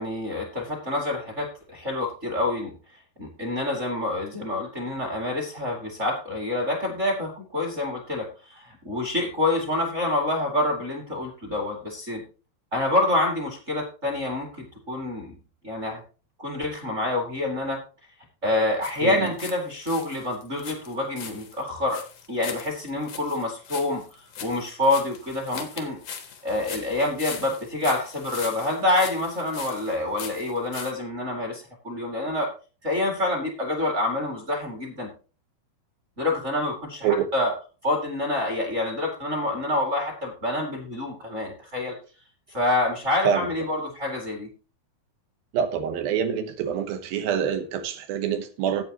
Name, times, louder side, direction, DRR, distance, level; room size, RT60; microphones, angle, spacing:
voice 1, 0.0-2.7 3.2-12.2 12.7-15.3 15.6-16.0 16.4-17.8 18.4-22.0 22.3-24.0 24.4-26.0 26.4-32.5 32.8-35.1 36.2-37.5 37.8-41.9 42.5-44.5, left 2 dB, 25° right, -1 dB, 1.8 m, -27 dB
sound 1, 18.8-19.6 19.8-30.9, left 7 dB, 85° left, 1.0 m, -40 dB
voice 2, 19.0-19.3 37.0-37.3 43.2-43.5 45.5-48.8, right 8 dB, 80° right, 9 dB, 2.8 m, -26 dB
12.5 x 8.9 x 2.9 m, 0.35 s
omnidirectional pair, 4.3 m